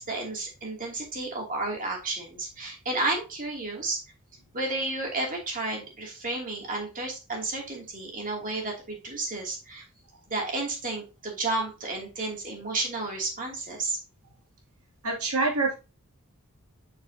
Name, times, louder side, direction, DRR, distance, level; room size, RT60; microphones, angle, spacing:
voice 1, 0.0-4.0 4.5-9.8 10.3-14.0, right 2 dB, 40° right, 0 dB, 2.8 m, -32 dB
voice 2, 15.0-15.8, right 3 dB, 80° right, 0 dB, 2.8 m, -25 dB
7.6 x 6.6 x 2.8 m, 0.30 s
head